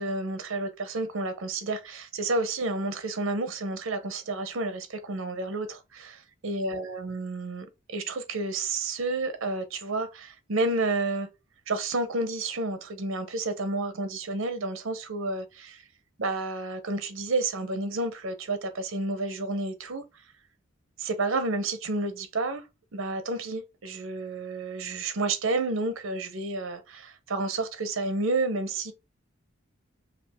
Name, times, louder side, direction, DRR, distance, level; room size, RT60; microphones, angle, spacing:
voice 1, 0.0-11.3 11.7-15.8 16.2-20.0 21.0-22.6 22.9-28.9, right 2 dB, 85° right, 0.8 m, -30 dB
5.1 x 2.5 x 3.5 m
head